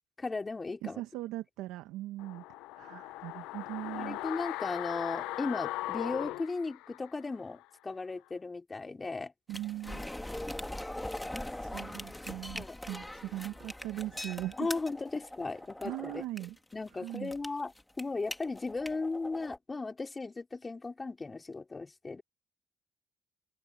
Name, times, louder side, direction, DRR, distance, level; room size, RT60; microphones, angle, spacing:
voice 1, 0.2-1.0 4.0-9.3 12.5-12.8 14.6-16.2 16.7-22.2, left 3 dB, 30° left, 3.6 m, -36 dB
voice 2, 0.8-2.4 2.8-4.2 9.5-10.1 11.7-14.7 15.8-16.6 17.0-17.3, right 15 dB, 85° right, 0.9 m, -40 dB
sound 1, 2.2-7.3 7.6-7.7, left 18 dB, 85° left, 0.5 m, -38 dB
sound 2, 9.5-19.6, left 1 dB, 10° left, 1.9 m, -42 dB
supercardioid pair, 55°, 0 cm